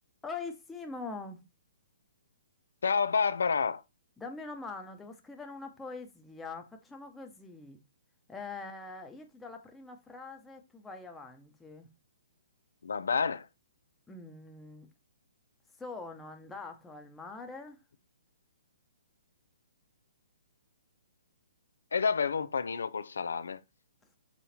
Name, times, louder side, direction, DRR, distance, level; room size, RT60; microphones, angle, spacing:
voice 1, 0.2-1.4 4.2-7.8 8.3-11.9 14.1-14.9 15.8-17.8, left 3 dB, 5° left, 0.9 m, -43 dB
voice 2, 2.8-3.8 12.8-13.5 21.9-23.6, left 5 dB, 90° left, 0.6 m, -29 dB
6.0 x 3.9 x 4.2 m
hypercardioid pair, 160°, 0 cm